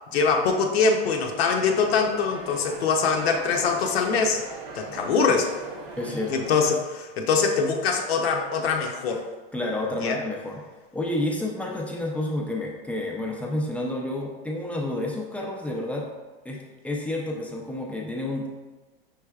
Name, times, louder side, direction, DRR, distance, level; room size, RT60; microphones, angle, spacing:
voice 1, 0.1-4.4 4.7-5.5 6.1-9.2 10.0-10.2, left 5 dB, 85° left, 2 dB, 0.6 m, -23 dB
sound 1, 1.3-6.7, right 3 dB, 60° right, 0.9 m, -40 dB
voice 2, 6.0-6.3 9.5-10.6 10.9-16.1 16.4-18.5, left 1 dB, 5° left, -2 dB, 0.4 m, -30 dB
5.5 x 3.3 x 2.3 m, 1.2 s
supercardioid pair, 125°, 30 cm